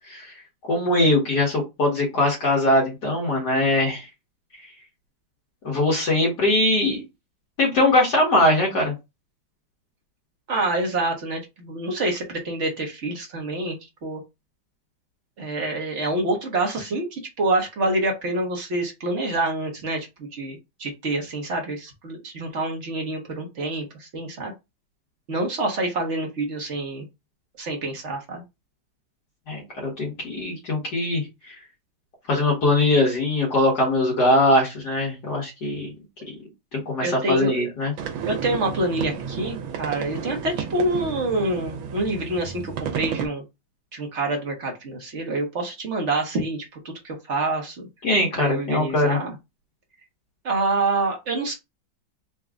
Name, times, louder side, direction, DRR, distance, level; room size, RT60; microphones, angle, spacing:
voice 1, 0.7-4.1 5.6-7.0 7.6-8.9 29.5-31.6 32.3-35.9 36.7-37.9 48.0-49.2, left 1 dB, 60° left, -2 dB, 1.8 m, -21 dB
voice 2, 10.5-13.7 14.0-14.2 15.4-24.5 25.3-27.0 27.6-28.4 37.0-37.7 38.3-43.4 43.9-47.9 48.4-49.3 50.4-51.5, right 2 dB, 50° right, 2 dB, 0.9 m, -27 dB
sound 1, 38.0-43.3, right 7 dB, 80° right, 1.6 m, -32 dB
4.1 x 2.3 x 3.5 m, 0.23 s
omnidirectional pair, 2.1 m